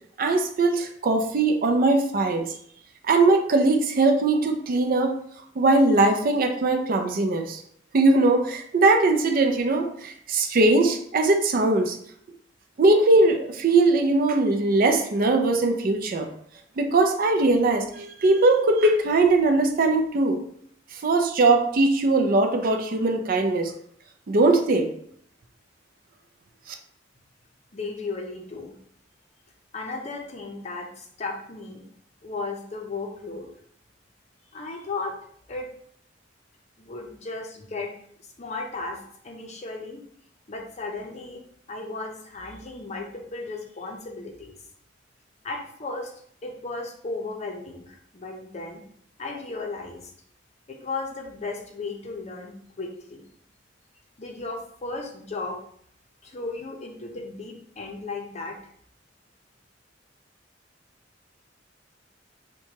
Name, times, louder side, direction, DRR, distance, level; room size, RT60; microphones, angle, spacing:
voice 1, 0.2-2.5 3.1-5.2 5.6-7.6 7.9-12.0 12.8-16.3 16.8-20.4 21.0-23.7 24.3-24.9, right 2 dB, 50° right, 5 dB, 0.4 m, -20 dB
voice 2, 27.7-28.7 29.7-31.8 32.2-33.5 34.5-35.1 35.5-35.7 36.8-37.9 38.4-40.0 40.5-41.4 41.7-44.6 45.4-46.1 46.4-48.8 49.2-50.1 50.7-53.2 54.2-55.6 56.2-58.6, left 3 dB, 35° left, 1 dB, 0.6 m, -35 dB
4.5 x 2.2 x 2.8 m, 0.63 s
head